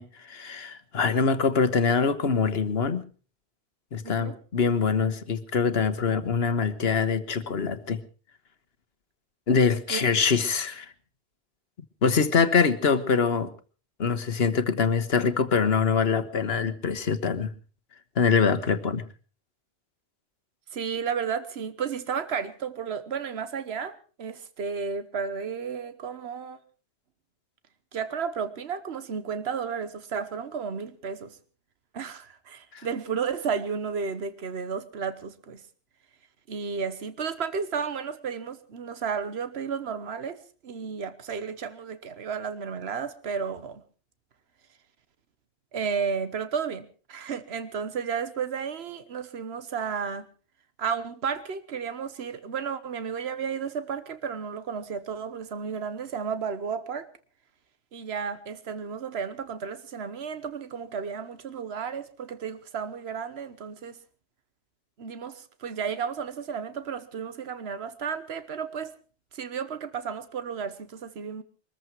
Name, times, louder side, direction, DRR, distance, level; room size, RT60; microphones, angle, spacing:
voice 1, 0.0-3.0 3.9-8.0 9.5-10.9 12.0-13.5 14.0-17.5 18.2-19.0 32.7-32.9, left 5 dB, 75° left, 12 dB, 1.4 m, -24 dB
voice 2, 4.0-4.4 9.9-10.0 20.7-26.6 27.9-31.4 31.9-35.6 36.5-43.8 45.7-50.3 50.8-57.1 57.9-64.0 65.0-68.9 69.3-71.4, right 6 dB, 80° right, 12 dB, 1.3 m, -33 dB
22.5 x 14.0 x 4.5 m, 0.37 s
omnidirectional pair, 1.1 m